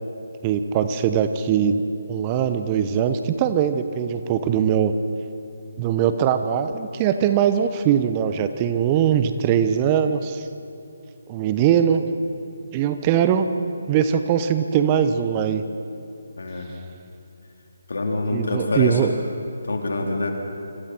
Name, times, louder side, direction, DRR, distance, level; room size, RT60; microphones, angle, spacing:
voice 1, 0.4-1.8 2.1-4.9 5.8-10.5 11.3-12.0 12.7-13.5 13.9-15.6 18.3-19.1, right 8 dB, 25° right, 9 dB, 0.9 m, -21 dB
voice 2, 16.4-16.8 17.9-19.1 19.6-20.3, left 2 dB, 65° left, 1 dB, 3.8 m, -25 dB
27.0 x 26.5 x 4.5 m, 2.7 s
figure-of-eight pair, 150°, 0 cm